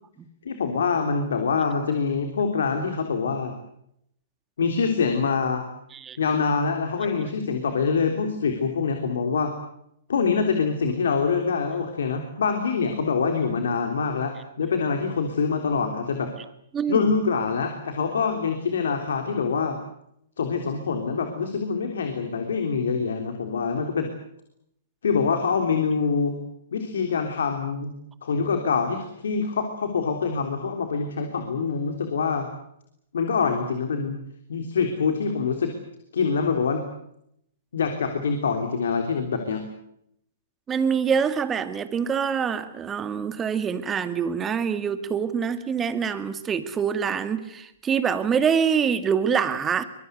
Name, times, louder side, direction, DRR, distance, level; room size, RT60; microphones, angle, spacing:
voice 1, 0.4-3.5 4.6-5.6 6.2-9.5 10.1-16.3 16.9-19.8 20.4-24.1 25.0-26.4 26.7-27.9 28.2-32.5 33.1-34.2 34.5-35.7 36.1-36.9 37.7-39.6, left 5 dB, 70° left, 5 dB, 3.5 m, -25 dB
voice 2, 16.7-17.2 40.7-49.8, right 7 dB, 20° right, 11 dB, 2.1 m, -25 dB
24.5 x 22.5 x 8.1 m, 0.75 s
hypercardioid pair, 120°, 0 cm